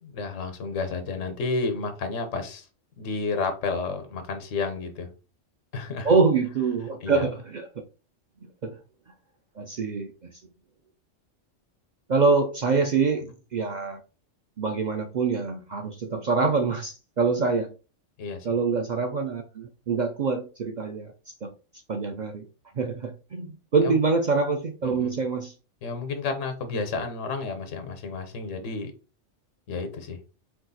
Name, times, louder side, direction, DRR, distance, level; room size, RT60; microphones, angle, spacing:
voice 1, 0.0-2.7 3.0-5.1 5.7-6.1 7.0-7.3 18.2-18.5 23.8-24.0 24.8-25.1 25.8-28.9 29.7-30.2, left 4 dB, 90° left, 7 dB, 1.2 m, -31 dB
voice 2, 6.0-7.7 8.4-8.8 9.6-10.1 12.1-14.0 14.6-17.7 18.4-21.5 21.9-22.5 22.7-25.5, right 4 dB, 60° right, 4 dB, 0.5 m, -25 dB
4.4 x 2.4 x 4.0 m, 0.34 s
omnidirectional pair, 1.3 m